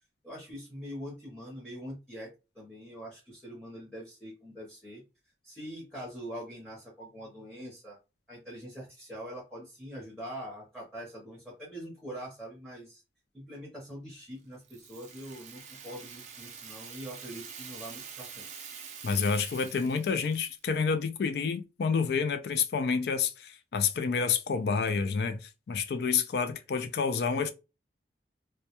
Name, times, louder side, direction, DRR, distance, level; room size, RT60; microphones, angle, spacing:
voice 1, 0.2-2.3 2.5-5.0 5.4-8.0 8.3-13.0 13.3-18.5, equal, 5° left, 0.7 m, -43 dB
Rattle (instrument), 14.6-20.6, right 7 dB, 40° right, 0.4 m, -46 dB
voice 2, 19.0-27.5, left 5 dB, 65° left, 0.3 m, -29 dB
2.2 x 2.1 x 2.8 m
head